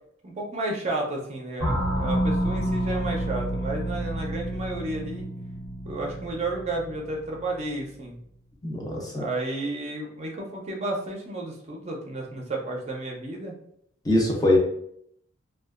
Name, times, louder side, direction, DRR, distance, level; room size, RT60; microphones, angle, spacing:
voice 1, 0.2-5.3 5.8-8.2 9.1-13.5, right 2 dB, 35° right, -1 dB, 0.5 m, -32 dB
sound 1, 1.6-7.9, right 1 dB, 75° left, 1.0 m, -29 dB
voice 2, 8.6-9.2 14.0-14.6, left 1 dB, 20° left, -2 dB, 0.5 m, -22 dB
2.7 x 2.3 x 2.4 m, 0.71 s
head